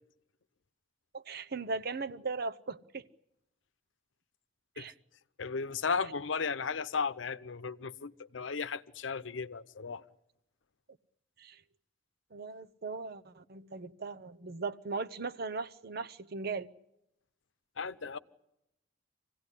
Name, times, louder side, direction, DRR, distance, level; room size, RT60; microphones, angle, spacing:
voice 1, 1.1-3.1 4.8-4.9 11.4-11.6 12.3-16.7, right 4 dB, 55° right, 0.8 m, -38 dB
voice 2, 5.4-10.0 17.8-18.2, left 5 dB, 90° left, 0.8 m, -35 dB
26.5 x 17.0 x 9.9 m
head